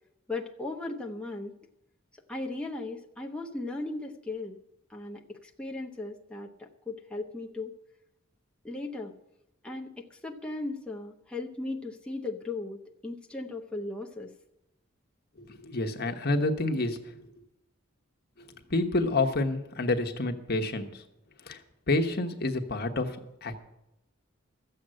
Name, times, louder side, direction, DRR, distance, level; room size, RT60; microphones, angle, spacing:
voice 1, 0.3-1.6 2.3-4.6 4.9-7.8 8.6-9.2 9.6-14.3, left 2 dB, 5° left, -1 dB, 0.9 m, -37 dB
voice 2, 15.4-17.2 18.4-21.0 21.4-21.6 21.9-23.6, left 2 dB, 50° left, 5 dB, 1.2 m, -29 dB
13.5 x 7.8 x 7.6 m, 0.87 s
head